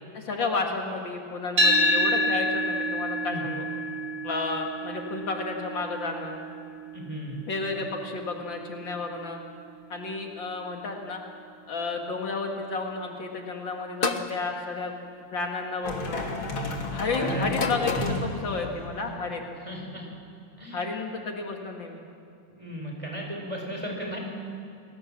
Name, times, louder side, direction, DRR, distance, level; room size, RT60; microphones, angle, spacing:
voice 1, 0.1-3.7 4.2-6.4 7.5-9.4 9.9-11.2 11.7-14.9 15.3-16.3 16.9-19.5 20.7-22.0, left 3 dB, 70° left, 2 dB, 2.7 m, -32 dB
sound 1, 1.6-9.8, equal, 60° right, 4.0 m, -29 dB
voice 2, 6.9-7.4 16.9-17.7 19.6-20.1 20.6-20.8 22.5-24.2, equal, 15° right, 0 dB, 4.6 m, -36 dB
sound 2, 14.0-14.4 15.5-15.9 17.5-18.2, left 4 dB, 35° left, 1.0 m, -29 dB
sound 3, 15.8-19.2, left 2 dB, 85° left, 3.4 m, -32 dB
29.0 x 19.5 x 7.5 m, 2.4 s
omnidirectional pair, 2.2 m